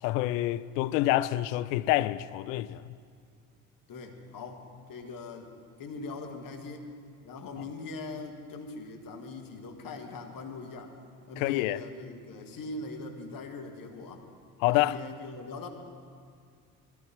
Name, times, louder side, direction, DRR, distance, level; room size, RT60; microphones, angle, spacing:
voice 1, 0.0-2.8 11.4-11.8 14.6-15.0, left 15 dB, 65° left, 0.6 m, -27 dB
voice 2, 3.9-5.5 5.8-6.9 7.2-11.0 11.3-14.3 14.8-15.7, left 3 dB, 45° left, 2.1 m, -41 dB
19.5 x 14.5 x 4.6 m
figure-of-eight pair, 50°, 45 cm